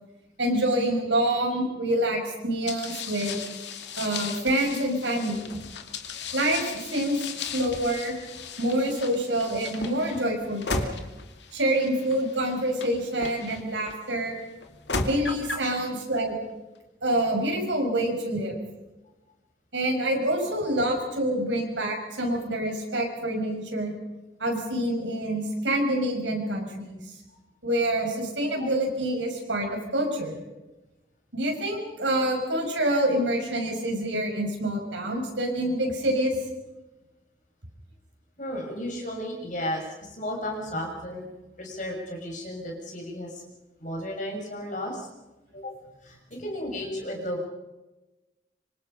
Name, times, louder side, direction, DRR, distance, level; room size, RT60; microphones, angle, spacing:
voice 1, 0.4-3.4 4.0-5.4 6.3-7.2 7.5-8.1 8.6-11.0 11.5-14.3 15.0-16.4 17.0-18.6 19.7-23.9 24.4-27.2 27.6-30.4 31.3-36.3, right 1 dB, 80° right, 2 dB, 6.5 m, -26 dB
sound 1, 2.7-13.9 14.6-15.7, left 4 dB, 70° left, 2.3 m, -36 dB
voice 2, 38.4-41.3 41.6-43.4 43.8-45.1 45.5-45.8 46.0-47.5, left 1 dB, 45° left, 1 dB, 6.5 m, -34 dB
26.0 x 25.0 x 5.6 m, 1.1 s
head